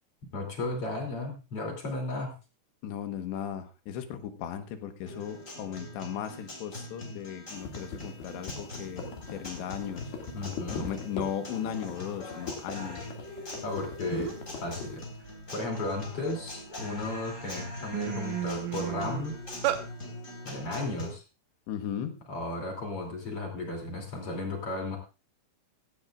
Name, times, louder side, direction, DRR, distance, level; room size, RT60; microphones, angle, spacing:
voice 1, 0.3-2.4 10.3-10.9 13.6-15.0 15.5-19.4 20.4-21.2 22.3-25.0, left 2 dB, 35° left, 1 dB, 3.4 m, -34 dB
voice 2, 2.8-10.0 10.7-13.0 21.7-22.2, left 9 dB, 85° left, 7 dB, 3.5 m, -36 dB
Guitar, 5.1-21.1, left 1 dB, 20° left, 3.7 m, -42 dB
sound 1, 7.5-14.9, left 5 dB, 60° left, 3.9 m, -40 dB
sound 2, 13.8-13.9 14.1-14.5 15.0-16.5 17.1-17.3 17.6-19.8, right 12 dB, 70° right, 2.1 m, -33 dB
16.0 x 15.0 x 2.4 m, 0.31 s
omnidirectional pair, 5.0 m